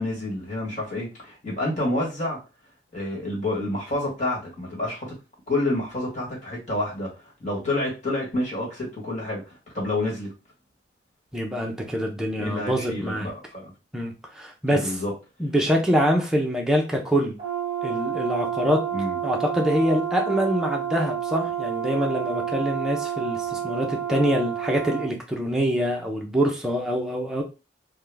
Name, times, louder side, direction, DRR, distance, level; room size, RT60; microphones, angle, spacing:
voice 1, 0.0-2.4 2.9-5.1 5.5-10.3 12.4-13.7 14.7-15.1 18.9-19.2, left 1 dB, 40° left, -4 dB, 1.4 m, -28 dB
voice 2, 11.3-13.3 13.9-15.0 15.4-17.4 17.8-18.8 19.2-27.4, equal, 5° right, 0 dB, 0.6 m, -25 dB
Brass instrument, 17.4-25.1, right 9 dB, 25° right, 1.1 m, -29 dB
3.6 x 2.2 x 3.4 m, 0.30 s
head